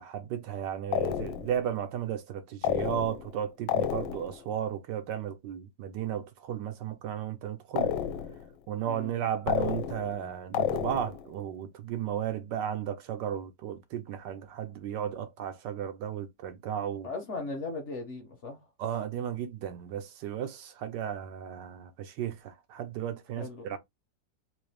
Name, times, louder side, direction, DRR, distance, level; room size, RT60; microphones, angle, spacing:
voice 1, 0.0-7.9 8.7-17.1 18.8-23.8, right 9 dB, 75° right, 1.2 m, -34 dB
sound 1, 0.9-1.6 2.6-3.4 3.7-4.4 7.8-8.5 9.5-10.2 10.5-11.3, left 10 dB, 80° left, 1.3 m, -30 dB
voice 2, 17.0-18.6 23.4-23.8, left 3 dB, 45° left, 1.1 m, -38 dB
4.0 x 2.6 x 3.2 m
omnidirectional pair, 2.0 m